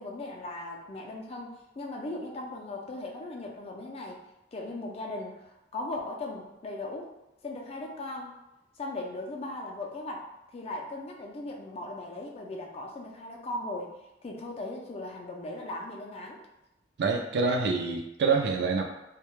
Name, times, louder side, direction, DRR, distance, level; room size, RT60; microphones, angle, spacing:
voice 1, 0.0-7.1 7.4-8.3 8.8-10.3 10.5-14.0 14.2-16.4, left 2 dB, 35° left, 0 dB, 0.4 m, -38 dB
voice 2, 17.0-18.8, right 4 dB, 65° right, 2 dB, 0.4 m, -26 dB
2.2 x 2.0 x 3.0 m, 0.91 s
head